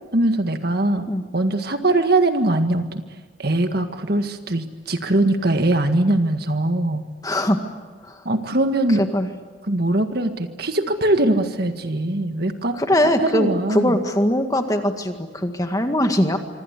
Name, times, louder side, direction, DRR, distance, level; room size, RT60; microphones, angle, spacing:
voice 1, 0.1-1.1 1.3-3.0 3.4-7.1 8.3-9.0 9.7-12.8 13.2-14.0, right 1 dB, 50° right, 7 dB, 1.8 m, -21 dB
voice 2, 7.2-7.6 8.0-8.2 9.0-9.3 12.7-16.4, left 1 dB, 20° left, 6 dB, 1.9 m, -21 dB
26.0 x 25.5 x 8.4 m, 1.3 s
head